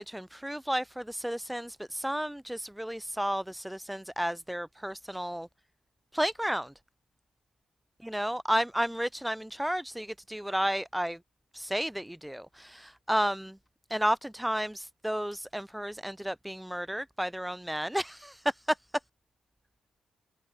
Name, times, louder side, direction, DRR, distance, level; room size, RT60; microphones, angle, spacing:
voice 1, 0.0-5.5 6.1-6.7 8.0-11.2 11.5-13.5 13.9-18.8, equal, 5° right, 3.1 m, -32 dB
hypercardioid pair, 40°, 0 cm